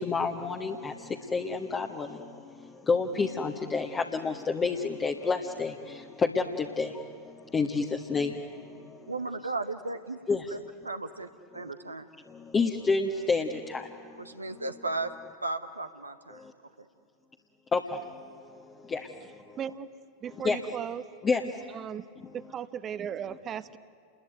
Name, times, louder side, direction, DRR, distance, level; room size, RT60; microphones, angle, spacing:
voice 1, 0.0-9.1 10.3-10.6 11.6-11.7 12.3-14.3 16.3-16.5 17.7-19.6 20.3-20.7 21.2-21.8 22.2-22.4 23.3-23.4, left 4 dB, 20° left, 3 dB, 1.5 m, -30 dB
voice 2, 9.1-10.2 10.5-10.6 10.8-11.3 11.5-12.1 14.2-15.1 15.4-16.4 16.8-16.9, right 3 dB, 80° right, 8 dB, 1.1 m, -35 dB
voice 3, 19.6-19.9 20.2-21.0 21.4-22.0 22.3-23.8, right 8 dB, 25° right, 14 dB, 1.0 m, -37 dB
29.5 x 21.5 x 9.3 m, 2.4 s
figure-of-eight pair, 90°, 0 cm